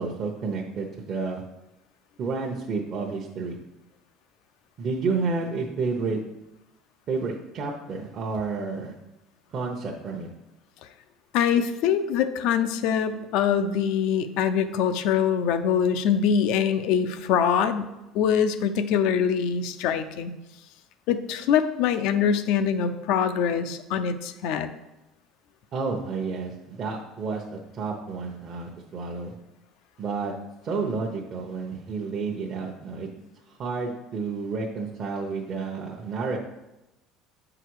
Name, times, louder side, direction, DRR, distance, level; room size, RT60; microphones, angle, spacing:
voice 1, 0.0-1.4 2.2-3.6 4.8-6.2 7.1-8.9 9.5-10.3 25.7-29.3 30.0-30.3 30.6-33.1 33.5-36.4, right 4 dB, 45° right, -1 dB, 0.9 m, -30 dB
voice 2, 11.3-17.9 18.1-20.3 21.1-24.7, left 7 dB, 70° left, 11 dB, 0.6 m, -24 dB
7.6 x 4.9 x 4.8 m, 0.95 s
supercardioid pair, 115°, 0 cm